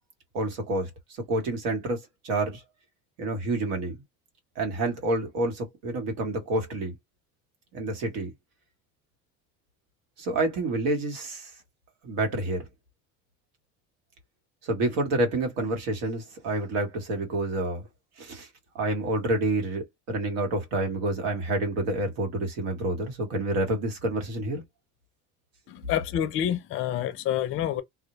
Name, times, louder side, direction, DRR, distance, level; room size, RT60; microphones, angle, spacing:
voice 1, 0.3-0.9 1.3-2.0 2.2-2.6 3.2-4.0 4.6-6.9 7.7-8.3 10.2-11.5 12.0-12.6 14.6-17.8 18.2-18.5 18.7-24.6, right 2 dB, 90° right, 1.1 m, -28 dB
voice 2, 25.7-27.8, left 10 dB, 45° left, 0.4 m, -28 dB
2.1 x 2.1 x 2.8 m
cardioid pair, 120°, 30 cm